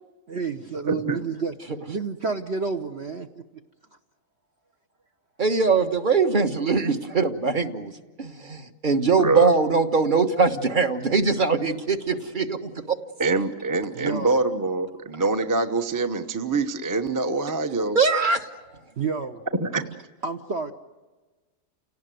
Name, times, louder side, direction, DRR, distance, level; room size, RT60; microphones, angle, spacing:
voice 1, 0.3-1.5 1.9-3.4 14.0-14.4 19.0-19.4 19.8-19.9 20.2-20.7, right 5 dB, 50° right, 5 dB, 1.1 m, -29 dB
voice 2, 0.9-1.2 9.2-9.5 13.2-18.0 19.6-19.8, right 3 dB, 15° right, 7 dB, 0.8 m, -25 dB
voice 3, 5.4-7.9 8.2-13.0 17.9-18.5, right 4 dB, 35° right, 7 dB, 1.4 m, -22 dB
30.0 x 18.0 x 9.3 m, 1.3 s
omnidirectional pair, 1.7 m